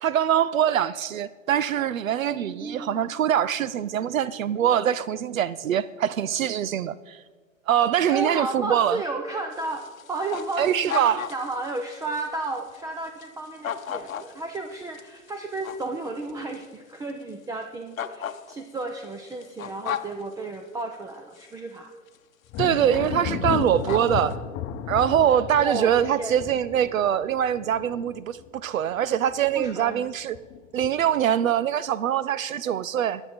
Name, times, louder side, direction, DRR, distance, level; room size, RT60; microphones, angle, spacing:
voice 1, 0.0-7.2 7.7-9.0 10.6-11.3 22.6-24.3 24.9-30.4 30.7-33.2, right 10 dB, 80° right, 0.5 m, -23 dB
voice 2, 2.4-3.0 8.1-21.9 23.9-24.5 25.6-26.4 29.5-30.1, right 3 dB, 10° right, 0.5 m, -33 dB
sound 1, 9.5-16.7 17.1-17.2 18.0-20.2 21.3-21.5 22.1-22.2 22.6-22.8 23.0-23.3 23.6-24.3, left 9 dB, 85° left, 0.9 m, -35 dB
Thunder, 22.5-29.0 29.3-29.9 30.3-31.2, left 9 dB, 30° left, 0.8 m, -34 dB
22.5 x 8.0 x 4.3 m
hypercardioid pair, 105°, 40 cm